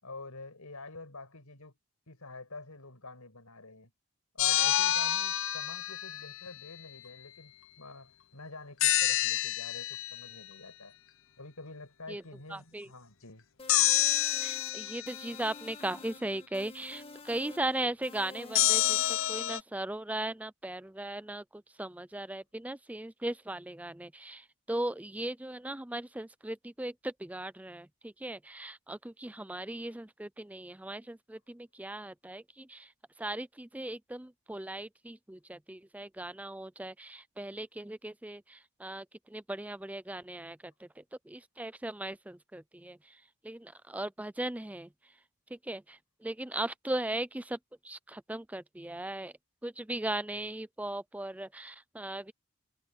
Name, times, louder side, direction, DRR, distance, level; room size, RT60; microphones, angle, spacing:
voice 1, 0.0-1.8 2.1-3.9 4.3-11.0 11.4-13.5, left 3 dB, 85° left, 5.9 m, -48 dB
sound 1, 4.4-6.5 8.8-10.3 13.7-15.4 18.5-19.6, left 13 dB, 65° left, 0.7 m, -28 dB
voice 2, 12.5-12.9 14.4-32.9 33.2-44.9 45.5-47.6 47.8-49.3 49.6-52.3, right 1 dB, 5° right, 0.4 m, -38 dB
sound 2, 13.6-19.4, left 2 dB, 25° left, 1.7 m, -49 dB
head